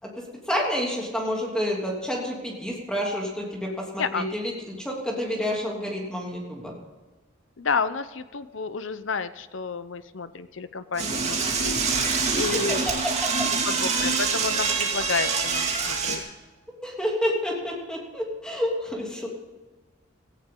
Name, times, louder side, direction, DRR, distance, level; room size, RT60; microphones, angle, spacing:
voice 1, 0.0-6.7 12.3-13.5 16.8-19.3, equal, 5° left, -2 dB, 2.9 m, -29 dB
voice 2, 7.6-11.9 12.3-12.8 13.5-16.2, left 5 dB, 70° left, 13 dB, 0.8 m, -30 dB
Door / Toilet flush, 11.0-16.2, right 4 dB, 35° right, 2.4 m, -25 dB
17.5 x 14.5 x 3.9 m, 1.3 s
head